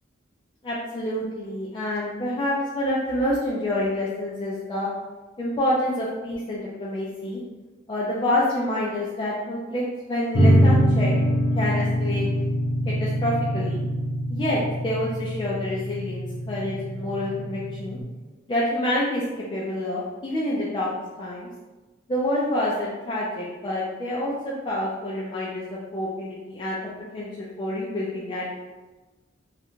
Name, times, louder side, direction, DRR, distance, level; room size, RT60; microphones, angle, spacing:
voice 1, 0.6-4.9 5.4-7.4 7.9-11.1 11.6-12.3 12.9-13.8 14.3-18.0 18.5-19.2 19.5-20.9 21.2-21.5 22.1-26.8 27.1-28.5, left 1 dB, 25° left, -7 dB, 0.3 m, -27 dB
sound 1, 10.3-18.0, equal, 75° left, 0.6 m, -24 dB
2.4 x 2.1 x 2.9 m, 1.2 s
head